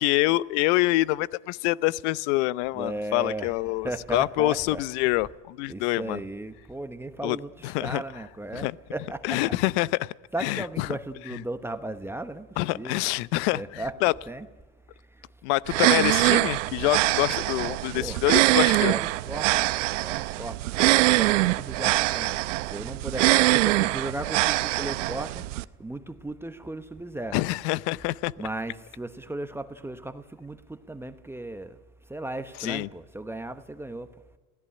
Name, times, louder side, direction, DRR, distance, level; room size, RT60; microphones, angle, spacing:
voice 1, 0.0-6.2 7.2-7.4 7.6-8.0 8.5-8.8 9.2-10.1 10.4-10.9 11.3-11.4 12.6-14.1 15.4-18.9 27.3-28.3 32.6-32.9, left 19 dB, 65° left, 0.7 m, -26 dB
voice 2, 2.8-3.5 3.8-4.8 5.7-9.4 10.3-12.5 12.7-13.1 13.5-13.9 14.3-14.5 17.9-18.2 18.5-20.6 21.1-22.3 22.7-25.5 25.8-27.4 28.4-31.8 32.1-34.1, right 2 dB, 5° right, 1.0 m, -36 dB
sound 1, 15.7-25.6, right 19 dB, 85° right, 0.7 m, -23 dB
27.0 x 17.0 x 9.9 m
supercardioid pair, 110°, 36 cm